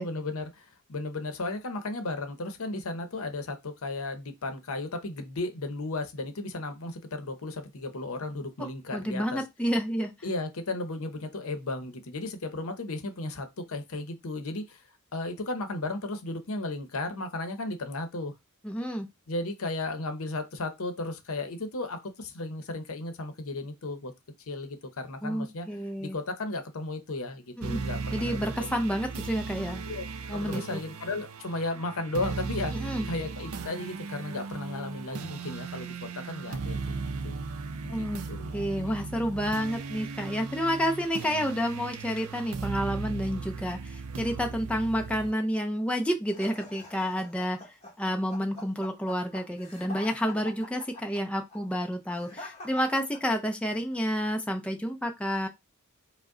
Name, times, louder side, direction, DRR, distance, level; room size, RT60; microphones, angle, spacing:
voice 1, 0.0-9.4 10.2-14.8 15.1-18.3 19.3-24.1 24.5-25.7 26.0-28.4 29.9-37.4 37.8-39.0, left 2 dB, 70° left, 0.8 m, -35 dB
voice 2, 8.9-10.1 18.6-19.1 25.2-26.2 27.6-27.8 28.1-29.9 30.3-30.8 32.7-33.1 37.9-38.2 38.5-55.5, equal, 5° left, 0.5 m, -30 dB
sound 1, 27.6-45.3, right 4 dB, 75° right, 0.5 m, -37 dB
sound 2, 46.3-53.7, left 1 dB, 30° left, 1.1 m, -45 dB
5.0 x 2.1 x 3.7 m
head